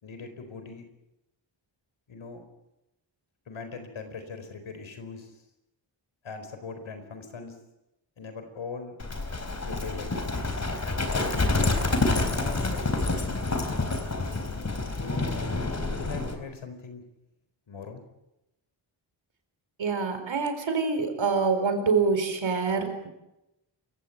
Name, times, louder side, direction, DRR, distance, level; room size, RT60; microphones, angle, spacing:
voice 1, 0.0-0.9 2.1-2.4 3.5-5.3 6.2-7.5 8.2-9.0 9.6-10.6 11.1-13.4 15.8-17.0 17.7-18.0, left 4 dB, 80° left, 8 dB, 4.6 m, -41 dB
Livestock farm animals working animals, 9.0-16.4, left 3 dB, 35° left, 4.0 m, -28 dB
voice 2, 19.8-23.1, right 4 dB, 70° right, 7 dB, 4.6 m, -26 dB
27.5 x 16.5 x 8.1 m, 0.91 s
wide cardioid pair, 105°, 47 cm